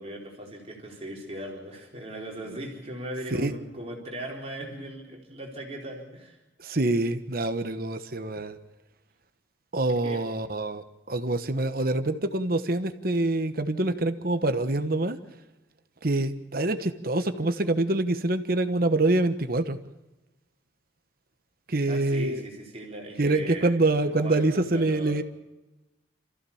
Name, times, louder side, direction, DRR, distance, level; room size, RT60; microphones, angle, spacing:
voice 1, 0.0-6.4 10.0-10.2 21.9-25.2, right 1 dB, 35° right, -1 dB, 4.3 m, -39 dB
voice 2, 6.6-8.6 9.7-15.2 16.0-19.8 21.7-22.4 23.2-25.2, right 2 dB, 50° right, 10 dB, 1.2 m, -25 dB
27.5 x 15.0 x 7.2 m, 1.0 s
head